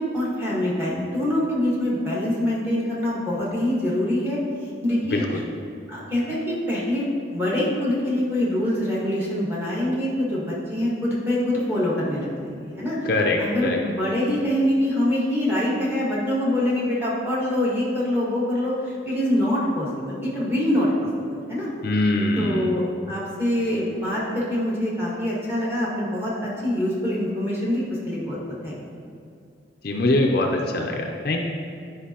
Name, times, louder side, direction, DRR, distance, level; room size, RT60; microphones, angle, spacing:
voice 1, 0.0-5.4 5.9-13.1 13.4-21.7 22.4-28.8, left 1 dB, 10° right, -7 dB, 1.5 m, -25 dB
voice 2, 5.0-5.4 13.0-13.8 21.8-22.8 29.8-31.4, left 2 dB, 50° left, 1 dB, 0.5 m, -23 dB
10.0 x 5.2 x 2.9 m, 2.3 s
head